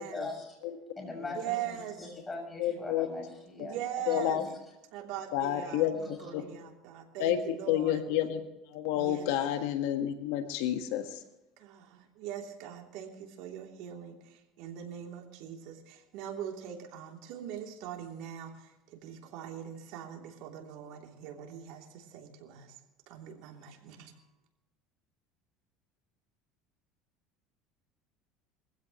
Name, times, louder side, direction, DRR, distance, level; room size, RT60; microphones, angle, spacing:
voice 1, 0.0-0.5 0.9-3.8 4.0-4.5, left 2 dB, 15° left, 0 dB, 6.6 m, -41 dB
voice 2, 1.3-2.0 3.6-4.4 4.9-8.0 8.9-9.3 11.6-22.7 23.1-24.1, right 9 dB, 70° right, 2 dB, 3.0 m, -41 dB
voice 3, 2.6-3.1 3.6-3.7 4.1-4.4 5.3-6.4 7.2-8.4 8.7-11.2, left 11 dB, 80° left, 7 dB, 1.5 m, -30 dB
22.5 x 15.5 x 3.1 m, 0.96 s
supercardioid pair, 115°, 0 cm